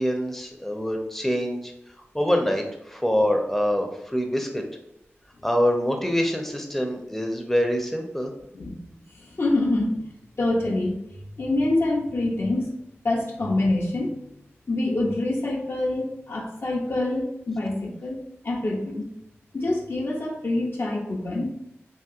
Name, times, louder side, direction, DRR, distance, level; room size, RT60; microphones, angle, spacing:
voice 1, 0.0-1.7 2.1-4.6 5.4-8.3, equal, 5° left, 3 dB, 0.5 m, -25 dB
voice 2, 9.1-10.0 10.4-11.0 11.4-12.7 13.0-14.2 14.7-19.1 19.5-21.6, left 2 dB, 55° left, -2 dB, 0.6 m, -26 dB
2.9 x 2.8 x 2.4 m, 0.87 s
wide cardioid pair, 55°, 5 cm